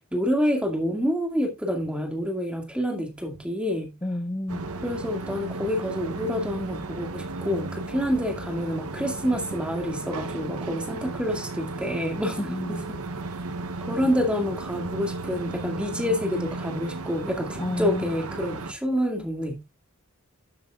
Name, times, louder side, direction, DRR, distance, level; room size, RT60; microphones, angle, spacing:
voice 1, 0.1-4.0 4.8-12.4 12.7-13.0 13.9-19.6, equal, 5° right, 2.1 m, -28 dB
voice 2, 4.0-4.7 12.4-12.9 17.6-18.1, left 1 dB, 15° left, 0.6 m, -30 dB
sound 1, 4.5-18.7, right 3 dB, 75° right, 0.8 m, -35 dB
12.5 x 7.3 x 2.4 m
head